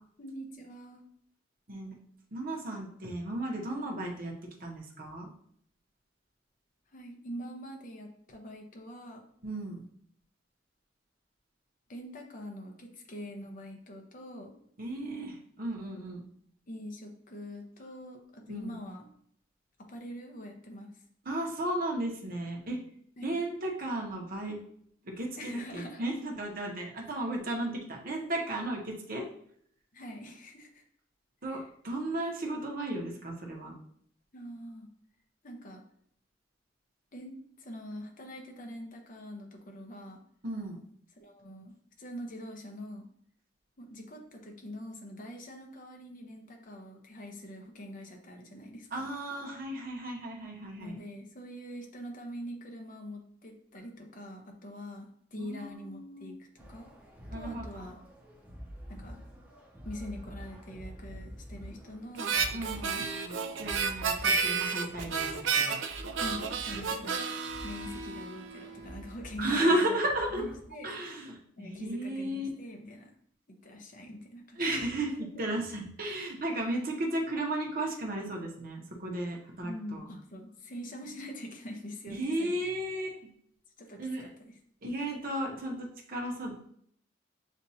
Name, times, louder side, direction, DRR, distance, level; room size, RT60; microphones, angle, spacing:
voice 1, 0.2-1.1 6.9-9.2 11.9-14.5 15.8-16.0 16.7-19.1 19.8-21.0 23.2-23.3 25.4-26.1 29.9-30.8 31.5-31.6 34.3-34.9 35.4-35.8 37.1-40.2 41.2-43.1 43.8-49.1 50.7-56.9 57.3-58.0 58.9-59.2 59.8-63.1 66.2-67.3 67.6-70.0 70.4-70.9 71.6-73.1 73.5-74.6 79.6-82.6 83.8-84.6, equal, 45° left, 2 dB, 0.9 m, -44 dB
voice 2, 2.3-4.3 4.6-5.3 9.4-9.8 14.8-16.2 18.5-18.8 21.2-22.8 23.2-24.6 25.0-29.3 31.4-33.7 40.4-40.8 48.9-51.0 55.4-56.4 57.3-57.9 62.5-65.8 69.4-70.4 70.8-72.5 74.6-80.1 82.1-83.3 84.0-84.3 84.8-86.7, right 1 dB, 50° right, 0 dB, 1.0 m, -34 dB
sound 1, 56.6-70.6, equal, 10° right, 0.9 m, -47 dB
Harmonica, 62.2-68.7, right 5 dB, 80° right, 0.5 m, -31 dB
7.3 x 2.6 x 2.8 m, 0.65 s
head